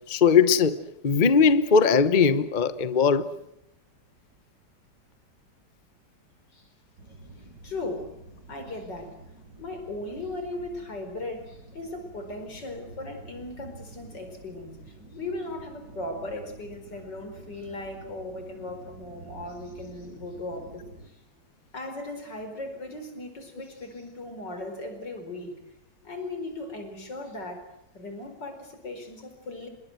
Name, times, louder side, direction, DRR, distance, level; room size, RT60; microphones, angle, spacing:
voice 1, 0.1-3.3, left 5 dB, 30° left, 1.0 m, -20 dB
sound 1, 7.0-21.1, right 2 dB, 85° right, 3.7 m, -49 dB
voice 2, 7.6-8.1 8.5-9.2 9.6-21.2 21.7-25.5 26.0-27.7 27.9-29.7, left 2 dB, 85° left, 5.4 m, -37 dB
27.0 x 21.0 x 7.9 m
omnidirectional pair, 1.9 m